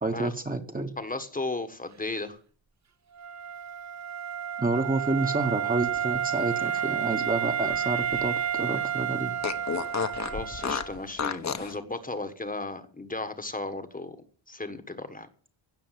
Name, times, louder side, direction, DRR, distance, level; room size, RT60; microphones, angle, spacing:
voice 1, 0.0-0.9 4.6-9.3, right 2 dB, 20° right, 6 dB, 1.3 m, -29 dB
voice 2, 1.0-2.4 10.2-14.2 14.5-15.3, left 2 dB, 15° left, 8 dB, 1.3 m, -35 dB
Wind instrument woodwind instrument, 3.1-11.0, right 9 dB, 35° right, 1.1 m, -31 dB
Fart, 6.4-8.5 8.8-8.9 9.4-11.8, left 6 dB, 35° left, 1.1 m, -33 dB
16.5 x 6.9 x 9.3 m, 0.43 s
wide cardioid pair, 175°, 48 cm